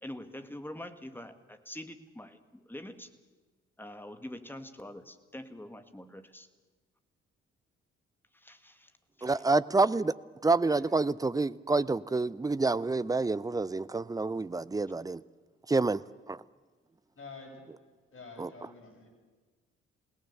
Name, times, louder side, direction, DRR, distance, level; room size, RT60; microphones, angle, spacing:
voice 1, 0.0-3.1 3.8-6.5 8.3-8.9 9.2-9.4, left 1 dB, 5° left, 2.0 m, -45 dB
voice 2, 9.2-10.1 10.4-15.2 15.7-16.0 16.3-16.4 18.4-18.7, right 3 dB, 10° right, 0.6 m, -28 dB
voice 3, 17.2-17.6 18.1-19.1, left 3 dB, 40° left, 8.0 m, -48 dB
27.5 x 17.5 x 6.8 m
figure-of-eight pair, 40°, 31 cm